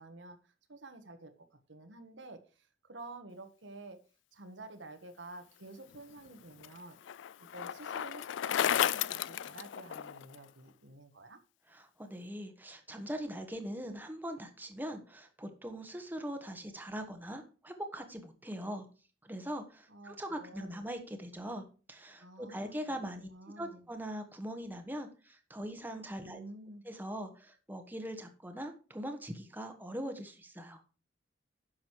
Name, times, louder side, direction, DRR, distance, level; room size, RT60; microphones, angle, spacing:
voice 1, 0.0-1.3 1.7-4.0 4.3-7.0 7.5-11.4 19.9-20.9 22.2-23.9 26.2-26.8, right 2 dB, 85° right, 7 dB, 1.4 m, -50 dB
Bicycle, 5.9-10.4, left 10 dB, 80° left, 0.3 m, -33 dB
voice 2, 11.7-18.9 19.2-23.3 23.6-26.4 26.8-30.8, equal, 10° right, 5 dB, 1.3 m, -41 dB
10.5 x 6.4 x 4.7 m, 0.36 s
head